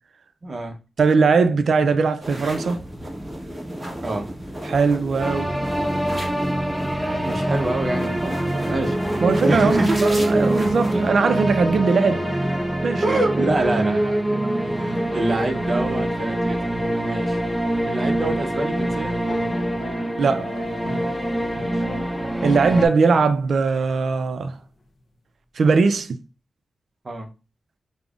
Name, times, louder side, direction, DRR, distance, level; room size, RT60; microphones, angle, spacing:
voice 1, 0.4-0.7 4.0-4.3 7.0-10.0 13.0-14.4 14.6-17.4 17.8-19.2 21.6-21.8 27.0-27.3, right 2 dB, 40° right, 0.7 m, -27 dB
voice 2, 1.0-2.8 4.6-5.5 9.2-12.2 12.8-13.2 20.2-20.5 22.4-24.6 25.6-26.1, right 4 dB, 70° right, 0.3 m, -20 dB
sound 1, 2.2-11.1, right 1 dB, 15° right, 0.9 m, -34 dB
sound 2, 5.2-22.9, right 1 dB, ahead, 0.5 m, -24 dB
sound 3, 19.2-24.6, left 2 dB, 55° left, 0.5 m, -38 dB
5.1 x 2.1 x 2.3 m
wide cardioid pair, 125°, 0 cm